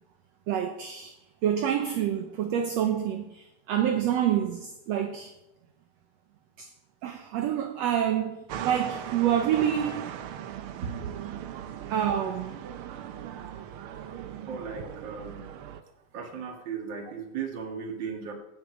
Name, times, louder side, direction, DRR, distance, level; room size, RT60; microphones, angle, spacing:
voice 1, 0.5-1.1 1.4-5.3 6.6-6.7 7.0-8.4 8.6-10.0 11.9-12.6, right 9 dB, 70° right, 1.8 m, -27 dB
sound 1, 8.5-15.8, right 10 dB, 85° right, 1.2 m, -38 dB
voice 2, 14.5-15.5 16.1-18.3, right 6 dB, 45° right, 2.0 m, -36 dB
17.0 x 7.8 x 6.2 m
omnidirectional pair, 3.6 m